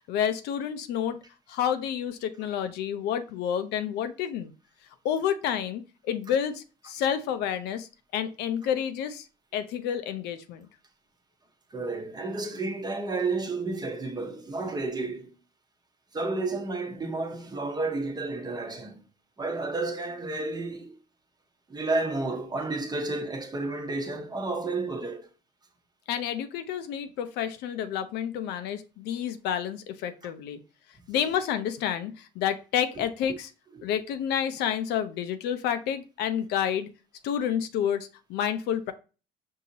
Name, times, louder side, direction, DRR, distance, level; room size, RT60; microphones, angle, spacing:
voice 1, 0.1-1.2 1.5-4.5 5.0-9.3 9.5-10.7 26.1-30.6 31.1-33.5 33.8-36.9 37.2-38.9, left 9 dB, 85° left, 0.5 m, -29 dB
voice 2, 11.7-15.4 16.1-19.1 19.4-21.0 21.7-25.3 33.0-33.1, right 3 dB, 25° right, 0.8 m, -31 dB
5.5 x 2.7 x 2.8 m
cardioid pair, 110°, 17 cm